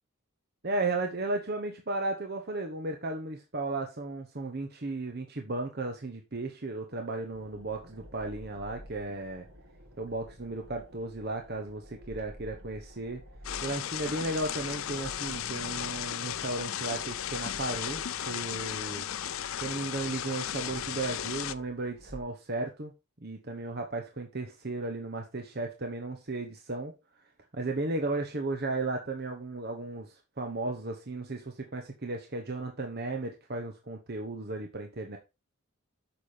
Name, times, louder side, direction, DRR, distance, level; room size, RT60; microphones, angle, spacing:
voice 1, 0.6-9.5 10.0-13.2 13.6-19.0 19.6-22.9 23.2-26.9 27.5-35.2, right 2 dB, 45° right, 4 dB, 1.1 m, -35 dB
sound 1, 7.3-22.2, equal, 80° right, 2.3 m, -51 dB
sound 2, 13.4-21.5, left 10 dB, 70° left, 0.6 m, -35 dB
8.7 x 6.2 x 5.1 m, 0.28 s
head